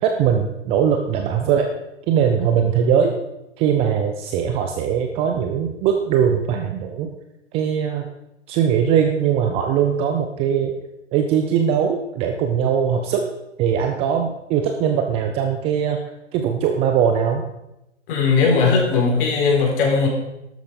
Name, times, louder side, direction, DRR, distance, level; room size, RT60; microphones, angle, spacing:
voice 1, 0.0-1.7 2.1-3.1 3.6-7.1 7.5-8.1 8.5-10.7 11.1-13.3 13.6-16.0 16.3-17.4, right 8 dB, 15° right, 5 dB, 0.5 m, -20 dB
voice 2, 18.1-20.1, left 4 dB, 45° left, -1 dB, 4.7 m, -18 dB
12.5 x 8.4 x 5.2 m, 0.90 s
hypercardioid pair, 130°, 37 cm